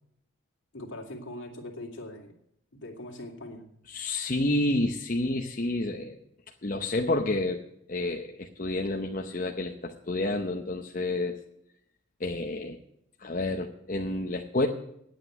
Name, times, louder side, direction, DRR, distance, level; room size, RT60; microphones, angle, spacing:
voice 1, 0.7-2.3 2.7-3.6, left 1 dB, 65° left, 2 dB, 2.6 m, -41 dB
voice 2, 3.9-6.2 6.6-7.6 7.9-11.4 12.2-12.8 13.2-14.7, left 2 dB, 40° left, 2 dB, 0.8 m, -29 dB
9.8 x 8.7 x 9.2 m, 0.76 s
head